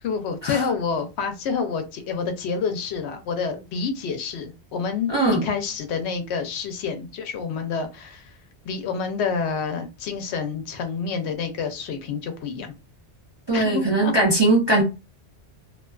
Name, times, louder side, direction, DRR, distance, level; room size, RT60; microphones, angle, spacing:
voice 1, 0.0-5.1 5.4-8.3 8.7-12.7 13.5-14.1, left 5 dB, 75° left, 0.8 m, -28 dB
voice 2, 5.1-5.4 13.5-14.8, right 2 dB, 40° right, 0.4 m, -20 dB
2.4 x 2.2 x 2.2 m
omnidirectional pair, 1.2 m